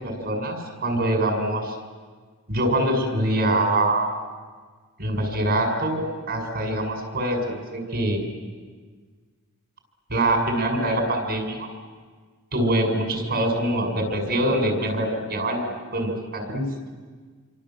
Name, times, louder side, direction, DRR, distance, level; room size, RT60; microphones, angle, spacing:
voice 1, 0.0-1.6 2.5-4.1 5.0-6.0 6.3-7.4 7.7-8.2 10.1-11.7 12.5-15.6 15.9-16.7, right 1 dB, 50° right, 2 dB, 6.8 m, -24 dB
28.0 x 25.5 x 7.7 m, 1.5 s
head